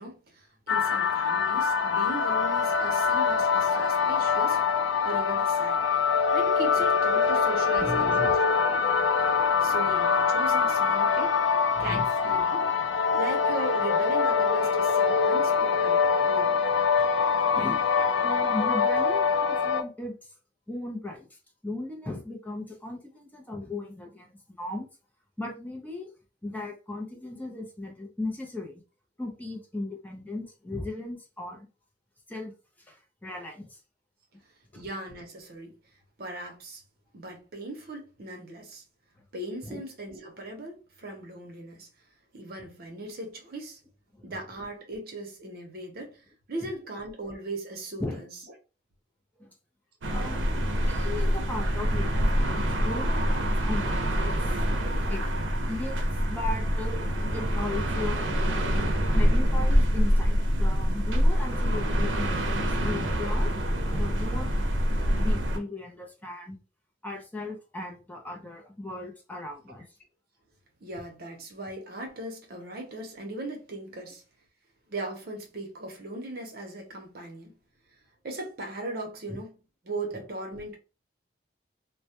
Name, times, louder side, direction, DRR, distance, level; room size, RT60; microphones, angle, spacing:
voice 1, 0.0-4.6 5.0-5.8 6.3-8.5 8.7-8.8 9.6-11.4 11.8-12.7 13.1-16.6 34.8-35.8 36.2-36.8 37.1-38.8 39.3-41.9 42.3-43.8 44.2-46.2 46.5-48.4 70.8-74.2 74.9-77.5 78.2-79.6 79.8-80.8, right 2 dB, 55° right, 0.7 m, -38 dB
sound 1, 0.7-19.8, left 6 dB, 90° left, 0.4 m, -24 dB
voice 2, 7.8-8.4 11.7-12.1 13.9-14.0 17.5-17.8 18.2-20.3 20.7-21.3 21.6-24.3 24.6-24.9 25.4-26.1 26.4-28.8 29.2-31.7 32.3-32.5 32.8-33.8 34.7-34.8 39.6-39.8 44.1-44.2 48.0-48.2 49.4-49.5 50.1-54.5 55.1-55.2 55.7-56.0 56.3-58.3 59.1-63.5 63.9-64.6 65.0-66.6 67.0-69.8, left 2 dB, 10° left, 0.5 m, -37 dB
sound 2, 50.0-65.6, equal, 90° right, 0.5 m, -25 dB
2.2 x 2.0 x 2.8 m
head